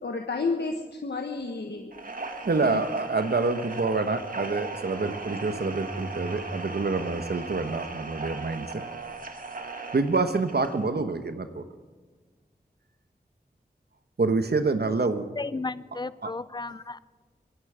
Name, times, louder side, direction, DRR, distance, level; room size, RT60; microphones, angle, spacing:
voice 1, 0.0-2.1 2.6-2.8, left 3 dB, 85° left, 3 dB, 1.2 m, -31 dB
sound 1, 1.9-10.8, right 3 dB, 55° right, 1.6 m, -38 dB
voice 2, 2.4-8.8 9.9-11.7 14.2-15.3 16.2-16.3, right 3 dB, 75° right, 9 dB, 1.1 m, -27 dB
sound 2, 5.5-8.4, right 1 dB, ahead, 0.9 m, -42 dB
voice 3, 15.4-17.0, left 3 dB, 25° left, 17 dB, 0.5 m, -34 dB
24.0 x 10.5 x 5.0 m, 1.5 s
wide cardioid pair, 60°, 17 cm